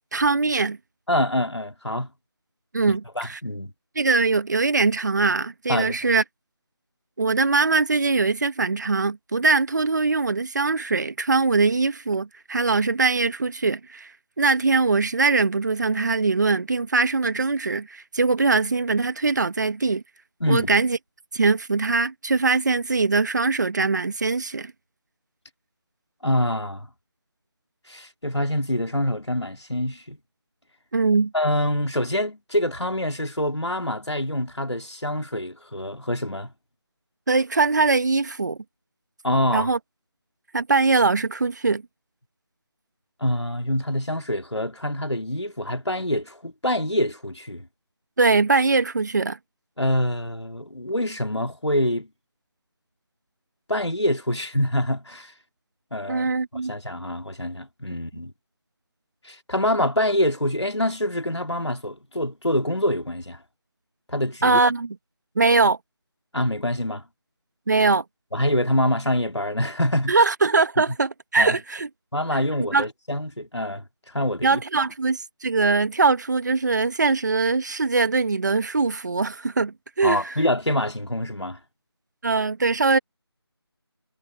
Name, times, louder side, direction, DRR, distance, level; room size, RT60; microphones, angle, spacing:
voice 1, 0.1-0.8 2.7-3.4 3.9-6.2 7.2-14.1 14.4-20.0 20.5-21.0 21.3-24.7 30.9-31.3 37.3-38.6 39.5-39.8 40.5-41.8 48.2-49.4 56.1-56.7 64.4-64.9 65.3-65.8 67.7-68.0 70.1-71.9 72.7-72.8 74.4-80.4 82.2-83.0, right 3 dB, 40° right, 1.7 m, -22 dB
voice 2, 1.1-2.1 2.9-3.7 5.7-6.0 20.4-20.7 26.2-26.9 27.9-30.2 31.3-36.5 39.2-39.7 43.2-47.7 49.8-52.1 53.7-55.3 55.9-56.3 56.7-58.3 59.2-63.4 64.1-64.6 66.3-67.0 68.3-70.2 71.4-71.6 72.1-73.8 74.1-74.6 80.0-81.6, left 1 dB, 90° left, 3.0 m, -25 dB
figure-of-eight pair, 160°, 14 cm